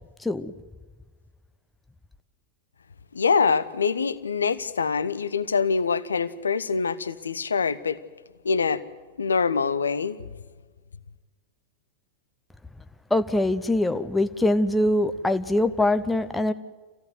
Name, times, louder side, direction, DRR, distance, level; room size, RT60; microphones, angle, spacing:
voice 1, 0.2-0.5 13.1-16.5, left 1 dB, 5° left, 1.0 m, -23 dB
voice 2, 3.1-8.0 8.4-8.8 9.2-10.2, left 5 dB, 75° left, 0.9 m, -24 dB
27.0 x 16.5 x 8.1 m
figure-of-eight pair, 90°, 0 cm